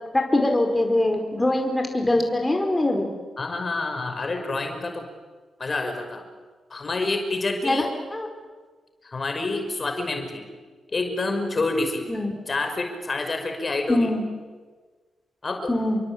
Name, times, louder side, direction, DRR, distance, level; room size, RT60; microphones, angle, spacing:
voice 1, 0.1-3.1 7.6-7.9 8.1-8.3 12.1-12.3 13.9-14.2 15.7-16.0, left 1 dB, 20° left, 3 dB, 5.1 m, -22 dB
voice 2, 3.4-5.1 5.6-6.2 6.7-7.9 9.0-10.5 10.9-12.1 12.5-14.1 15.4-15.7, left 2 dB, 40° left, 5 dB, 5.5 m, -28 dB
29.0 x 23.0 x 8.9 m, 1.4 s
supercardioid pair, 55°, 0 cm